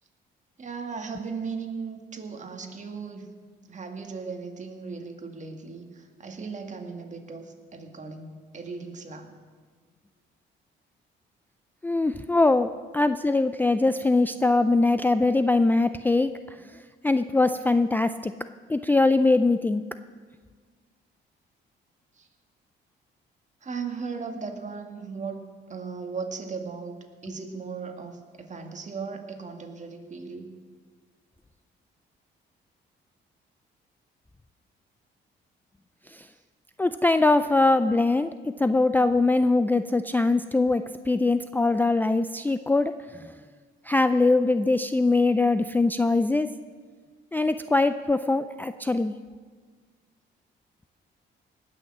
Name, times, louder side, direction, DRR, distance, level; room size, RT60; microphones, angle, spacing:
voice 1, 0.6-3.3 3.7-5.9 6.2-8.3 8.5-9.3 23.6-27.0 27.2-30.5, right 5 dB, 35° right, 4 dB, 1.9 m, -37 dB
voice 2, 11.8-16.4 17.0-18.3 18.7-19.8 36.8-43.0 43.9-46.5 47.3-49.1, left 2 dB, 10° left, 11 dB, 0.4 m, -22 dB
18.5 x 6.4 x 7.3 m, 1.5 s
cardioid pair, 90°, 20 cm